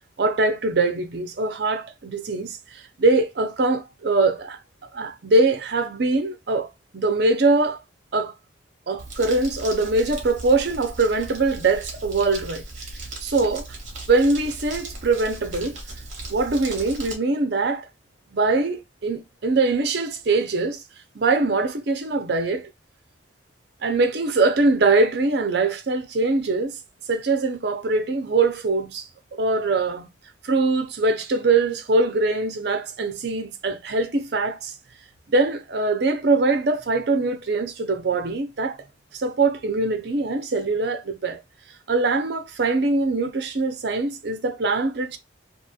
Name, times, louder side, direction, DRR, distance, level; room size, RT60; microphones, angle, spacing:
voice 1, 0.2-4.6 4.9-7.8 8.1-8.3 8.9-12.6 13.2-13.7 14.1-15.8 16.3-17.9 18.3-20.8 21.1-22.7 23.8-26.8 27.1-30.1 30.4-34.7 35.3-38.8 39.1-41.4 41.9-45.2, right 3 dB, 55° right, 0.5 m, -22 dB
Crumpling crinkling, 9.0-17.1, right 2 dB, 40° right, 1.2 m, -37 dB
2.9 x 2.9 x 2.3 m
head